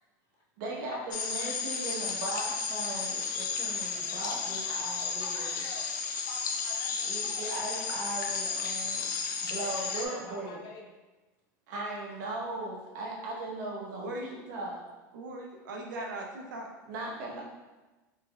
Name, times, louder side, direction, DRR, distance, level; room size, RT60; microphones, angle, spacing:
voice 1, 0.6-5.6 7.0-9.1 9.4-10.6 11.7-14.8 16.8-17.4, right 2 dB, 70° right, -3 dB, 0.9 m, -38 dB
sound 1, 1.1-10.1, left 5 dB, 85° left, 0.4 m, -33 dB
voice 2, 4.7-5.9 6.2-7.7 9.6-11.0, left 3 dB, 45° left, 0 dB, 0.6 m, -47 dB
voice 3, 13.9-14.4 15.1-16.7, right 1 dB, 90° right, 0 dB, 0.5 m, -39 dB
3.2 x 3.2 x 2.2 m, 1.2 s
hypercardioid pair, 95°, 10 cm